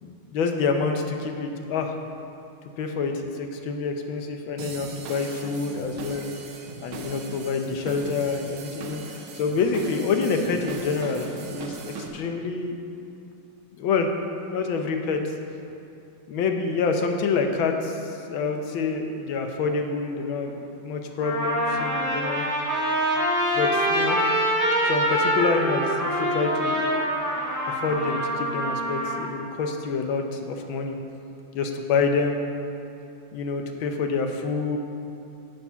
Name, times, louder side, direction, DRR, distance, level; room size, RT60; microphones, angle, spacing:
voice 1, 0.0-2.0 2.8-6.3 6.8-11.3 11.5-12.8 13.8-14.1 14.5-15.2 16.3-22.5 23.5-24.2 24.8-26.8 27.7-31.0 31.5-32.5 33.3-34.8, left 4 dB, 70° left, 4 dB, 1.6 m, -27 dB
sound 1, 4.6-12.1, right 4 dB, 90° right, 1.8 m, -39 dB
Trumpet, 20.5-20.6 21.2-29.2, equal, 10° right, 1.7 m, -25 dB
8.3 x 8.0 x 5.7 m, 2.6 s
omnidirectional pair, 2.4 m